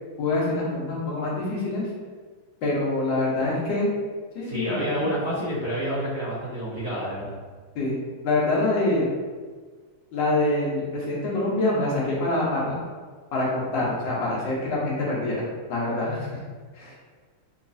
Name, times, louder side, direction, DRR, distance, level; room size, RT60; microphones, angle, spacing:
voice 1, 0.2-1.9 2.6-3.9 4.3-4.8 7.7-9.1 10.1-12.8 13.3-15.4 15.7-16.3 16.8-16.9, left 2 dB, 65° left, -5 dB, 1.5 m, -25 dB
voice 2, 4.4-7.4, equal, 50° right, -9 dB, 1.1 m, -29 dB
4.0 x 2.9 x 2.6 m, 1.5 s
omnidirectional pair, 2.4 m